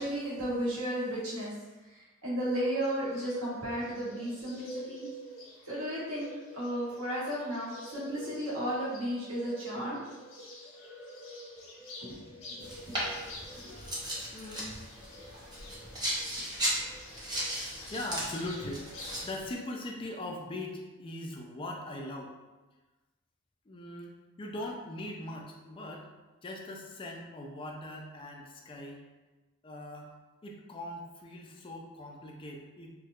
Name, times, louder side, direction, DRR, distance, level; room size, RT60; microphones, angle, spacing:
voice 1, 0.0-1.5 2.2-5.1 5.7-10.0 12.0-12.2 12.6-12.7 13.0-13.1 13.6-13.7, equal, 85° right, -7 dB, 1.2 m, -34 dB
Bird, 2.8-19.3, left 1 dB, 60° left, 0.9 m, -48 dB
sound 1, 12.6-19.5, equal, 20° right, 0.6 m, -36 dB
voice 2, 14.3-14.7 15.5-15.7 17.9-18.9 19.2-22.3 23.7-24.1 24.4-26.1 26.4-29.0 29.6-30.1 30.4-32.9, left 1 dB, 25° left, 0 dB, 0.3 m, -40 dB
4.3 x 2.1 x 2.4 m, 1.2 s
head